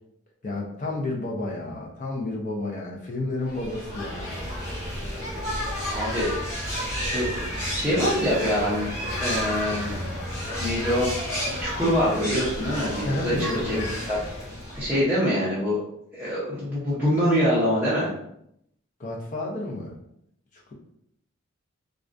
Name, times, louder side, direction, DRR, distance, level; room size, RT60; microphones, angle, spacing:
voice 1, 0.4-4.4 13.0-13.9 19.0-19.9 20.5-20.7, left 2 dB, 35° left, -1 dB, 0.5 m, -31 dB
sound 1, 3.5-15.1, equal, 15° left, 1.1 m, -31 dB
voice 2, 5.9-6.3 6.9-8.9 9.2-10.0 10.6-13.7 14.1-14.2 14.7-15.8 16.1-18.1, equal, 10° right, -10 dB, 0.6 m, -25 dB
2.3 x 2.2 x 2.5 m, 0.75 s
head